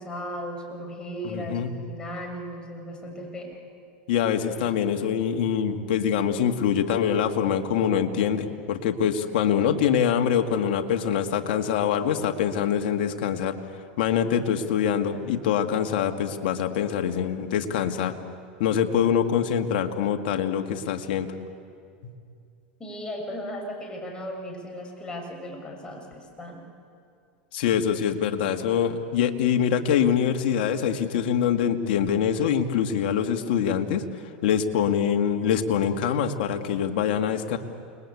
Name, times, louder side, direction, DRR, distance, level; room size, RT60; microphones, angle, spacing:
voice 1, 0.0-3.6 22.8-26.6, equal, 15° left, 0 dB, 7.0 m, -36 dB
voice 2, 1.2-1.7 4.1-13.5 14.0-18.1 18.6-21.3 22.0-22.1 27.5-34.0 34.4-37.6, left 8 dB, 70° left, 6 dB, 2.0 m, -24 dB
29.5 x 21.0 x 8.5 m, 2.3 s
hypercardioid pair, 105°, 5 cm